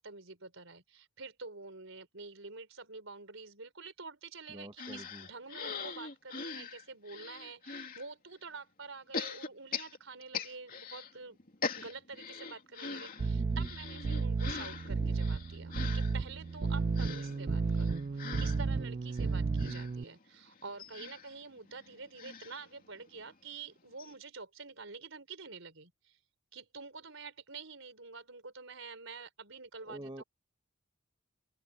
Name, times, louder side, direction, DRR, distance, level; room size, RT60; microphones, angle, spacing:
voice 1, 0.0-11.4 11.8-26.2 26.5-30.2, right 4 dB, 70° right, 4.5 m, -48 dB
voice 2, 4.5-5.2 13.2-13.7 29.9-30.2, right 1 dB, 20° right, 1.6 m, -46 dB
sound 1, 4.8-8.0 9.1-11.1 11.4-23.3 23.7-23.8 24.0-24.1, left 5 dB, 45° left, 2.9 m, -43 dB
sound 2, 13.2-20.0, right 4 dB, 35° right, 0.3 m, -33 dB
open air
head